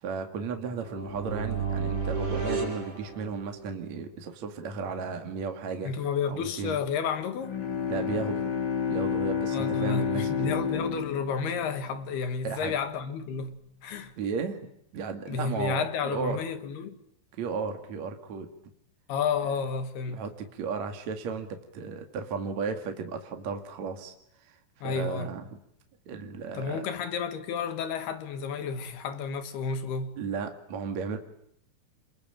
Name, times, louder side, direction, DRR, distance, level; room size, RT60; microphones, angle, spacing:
voice 1, 0.0-5.9 6.3-6.8 7.9-8.5 8.9-10.5 12.4-12.7 14.2-14.6 14.9-16.4 17.4-18.5 20.1-21.5 21.7-24.1 24.4-24.6 24.8-25.5 26.1-26.9 30.2-31.2, right 5 dB, 50° right, 2.7 m, -34 dB
sound 1, 0.7-3.8, right 5 dB, 75° right, 8.2 m, -32 dB
voice 2, 5.8-7.6 9.5-13.6 13.8-14.1 15.3-17.0 19.1-20.2 24.8-25.3 26.6-30.1, left 6 dB, 70° left, 3.5 m, -31 dB
Bowed string instrument, 7.4-12.5, left 7 dB, 35° left, 2.0 m, -30 dB
27.5 x 22.0 x 9.0 m
omnidirectional pair, 5.2 m